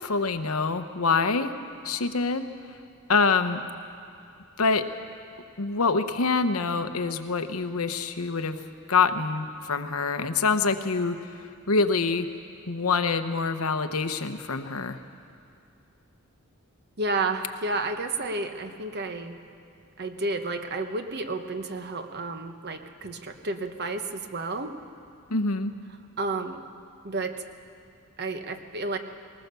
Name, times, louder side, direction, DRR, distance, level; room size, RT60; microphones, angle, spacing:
voice 1, 0.0-1.5 1.8-2.5 3.1-3.6 4.6-4.9 5.6-8.6 8.9-11.3 11.7-12.3 12.7-15.0 25.3-25.7, left 4 dB, 90° left, 8 dB, 1.0 m, -25 dB
voice 2, 17.0-19.4 20.0-24.7 26.2-26.6 27.0-27.3 28.2-29.0, right 3 dB, 50° right, 7 dB, 1.2 m, -31 dB
20.0 x 19.5 x 6.9 m, 2.4 s
head